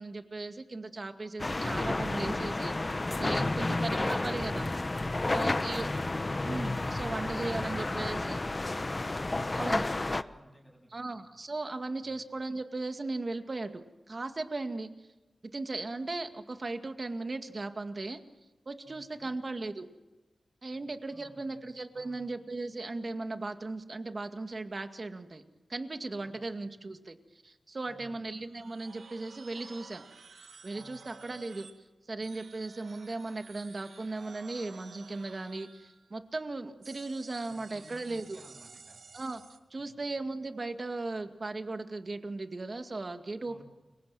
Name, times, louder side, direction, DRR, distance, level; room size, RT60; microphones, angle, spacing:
voice 1, 0.0-4.7 5.3-5.9 6.4-8.4 9.5-9.9 10.9-14.9 15.4-18.2 18.7-19.9 20.6-25.4 25.7-30.0 30.6-31.7 32.1-38.4 39.1-39.4 39.7-43.6, right 3 dB, 45° right, 7 dB, 2.1 m, -37 dB
sound 1, 1.4-10.2, left 2 dB, 30° left, 0.9 m, -31 dB
voice 2, 7.1-11.1 12.0-12.2 18.8-19.3 20.7-21.6 21.9-22.3 26.2-26.6 27.9-28.3 30.7-31.0 37.5-39.0 39.8-40.0 43.5-43.6, right 1 dB, 5° right, 1 dB, 7.9 m, -55 dB
sound 2, 28.4-31.8 32.2-36.2 36.8-39.6, right 4 dB, 80° right, 1.8 m, -53 dB
29.5 x 23.5 x 7.7 m, 1.1 s
wide cardioid pair, 80°, 0 cm